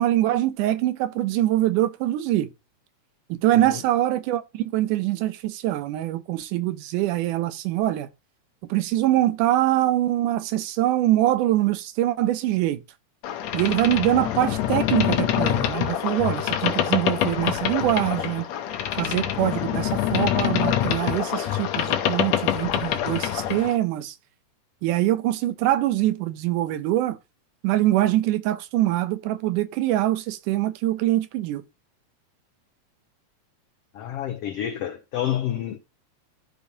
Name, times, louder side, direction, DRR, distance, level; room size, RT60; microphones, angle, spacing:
voice 1, 0.0-2.5 3.3-8.1 8.7-12.8 13.5-18.5 19.0-24.2 24.8-27.2 27.6-31.6, right 14 dB, 90° right, 2.2 m, -23 dB
Boat Water vehicle, 13.2-23.8, left 11 dB, 70° left, 1.9 m, -25 dB
voice 2, 33.9-35.8, left 11 dB, 90° left, 1.3 m, -29 dB
12.0 x 5.1 x 2.8 m
omnidirectional pair, 3.5 m